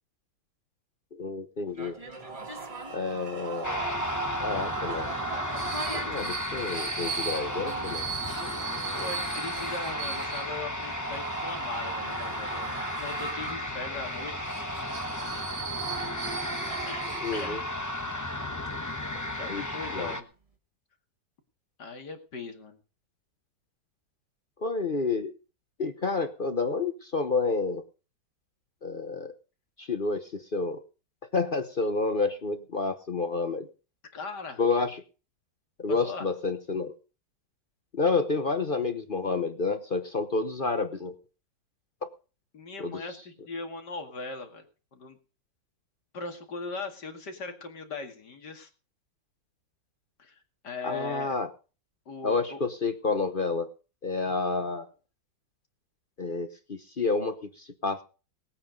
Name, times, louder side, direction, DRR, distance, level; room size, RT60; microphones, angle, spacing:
voice 1, 1.1-2.0 2.9-3.8 4.4-5.1 5.9-8.1 17.2-17.6 19.5-20.2 24.6-25.3 25.8-27.8 28.8-29.3 29.8-30.8 31.2-33.7 34.6-35.0 35.8-37.0 37.9-41.2 42.0-42.1 42.8-43.1 50.8-51.5 52.2-53.7 54.0-54.9 56.2-58.0, left 4 dB, 40° left, 9 dB, 0.8 m, -29 dB
sound 1, 1.7-19.8 20.1-20.2, right 1 dB, 20° right, 1.7 m, -47 dB
sound 2, 2.1-17.9, right 6 dB, 90° right, 3.1 m, -37 dB
sound 3, 3.6-20.2, left 1 dB, 15° left, 0.7 m, -34 dB
voice 2, 8.4-12.5 13.0-14.3 16.7-17.6 19.4-20.2 21.8-22.8 34.1-34.6 35.9-36.3 42.5-44.7 44.9-45.2 46.1-48.7 50.2-51.3 52.1-52.6, left 3 dB, 65° left, 5 dB, 2.8 m, -39 dB
19.0 x 8.7 x 5.2 m, 0.36 s
omnidirectional pair, 2.0 m